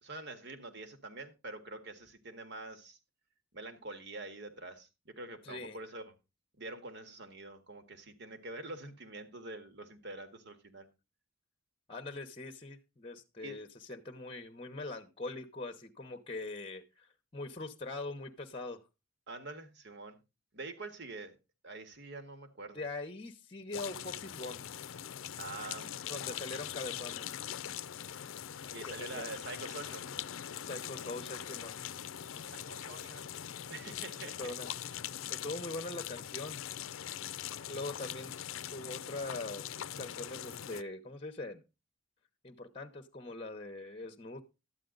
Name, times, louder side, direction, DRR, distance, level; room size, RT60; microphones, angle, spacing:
voice 1, 0.0-3.0 3.5-6.1 6.6-10.9 13.4-13.6 19.3-20.2 20.5-21.4 21.6-22.8 25.4-26.4 28.7-30.1 32.5-33.3 33.7-34.5, right 2 dB, 60° right, 8 dB, 1.8 m, -46 dB
voice 2, 5.4-5.8 11.9-18.8 22.7-24.7 26.1-27.3 28.9-29.3 30.7-31.7 34.4-34.7 35.3-36.6 37.7-38.3 38.7-39.7 40.0-41.6 42.4-44.4, left 2 dB, 25° left, 9 dB, 0.9 m, -42 dB
sound 1, 23.7-40.8, left 10 dB, 85° left, 0.5 m, -42 dB
12.5 x 9.2 x 3.9 m, 0.27 s
head